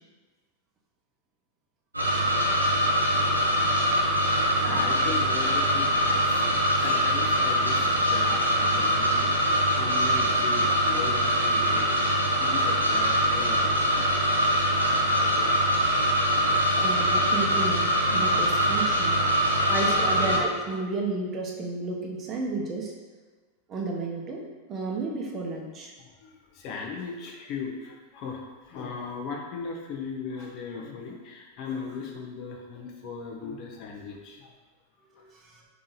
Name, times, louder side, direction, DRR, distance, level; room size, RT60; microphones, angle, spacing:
sound 1, 1.9-20.4, equal, 85° right, 0.6 m, -23 dB
voice 1, 3.9-14.2 15.3-15.7 16.3-16.8 19.4-20.1 26.0-34.5, left 5 dB, 40° left, 1 dB, 0.6 m, -38 dB
voice 2, 16.8-19.2 19.7-22.9 23.7-24.4 24.7-25.9 35.0-35.6, right 3 dB, 30° right, 0 dB, 0.7 m, -32 dB
3.7 x 2.9 x 3.9 m, 1.3 s
figure-of-eight pair, 90°, 0 cm